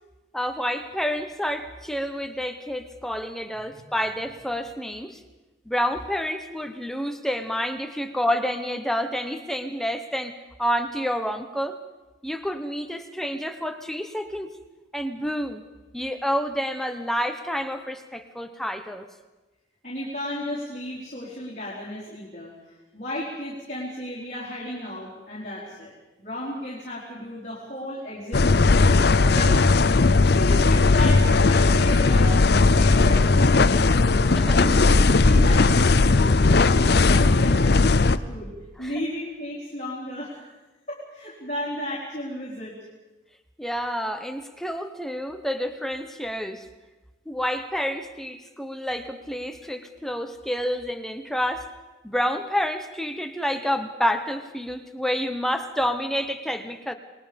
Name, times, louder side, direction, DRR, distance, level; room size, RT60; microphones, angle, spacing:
voice 1, 0.3-5.2 5.7-11.8 12.2-14.5 14.9-15.6 15.9-19.1 29.2-29.3 34.4-34.6 38.8-39.0 43.6-46.6 47.3-51.7 52.0-56.9, equal, ahead, 7 dB, 1.0 m, -29 dB
voice 2, 19.8-25.9 26.2-29.6 29.8-32.4 32.7-36.2 36.5-40.5 40.9-42.8, left 1 dB, 35° left, -6 dB, 4.3 m, -34 dB
sound 1, 28.3-38.2, left 3 dB, 55° left, 0.6 m, -18 dB
28.0 x 20.5 x 5.3 m, 1.2 s
head